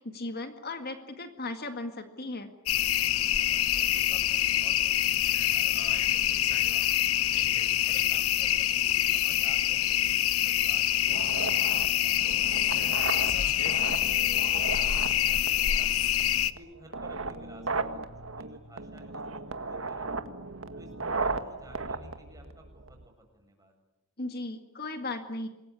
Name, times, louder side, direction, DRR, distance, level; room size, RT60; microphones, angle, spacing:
voice 1, 0.0-2.5 24.2-25.5, left 2 dB, 50° left, 7 dB, 2.0 m, -36 dB
sound 1, 2.7-16.5, left 12 dB, 85° left, 0.9 m, -26 dB
voice 2, 3.3-7.4 7.8-12.6 13.0-18.0 18.4-20.2 20.8-23.7, right 1 dB, 15° right, 2 dB, 7.9 m, -54 dB
sound 2, 11.1-23.1, right 3 dB, 70° right, 1.8 m, -36 dB
27.0 x 21.5 x 9.7 m, 0.94 s
head